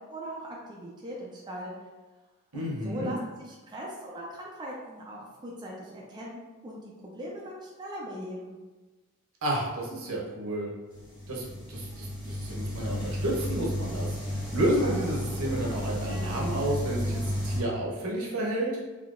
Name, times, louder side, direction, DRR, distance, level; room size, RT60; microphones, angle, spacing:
voice 1, 0.1-1.7 2.5-8.6, equal, 20° right, -4 dB, 0.4 m, -40 dB
voice 2, 2.5-3.2 9.4-10.7 11.3-18.8, right 1 dB, 70° right, -3 dB, 0.8 m, -31 dB
sound 1, 10.9-17.6, equal, 60° left, 1.2 m, -33 dB
3.7 x 2.7 x 2.4 m, 1.2 s
head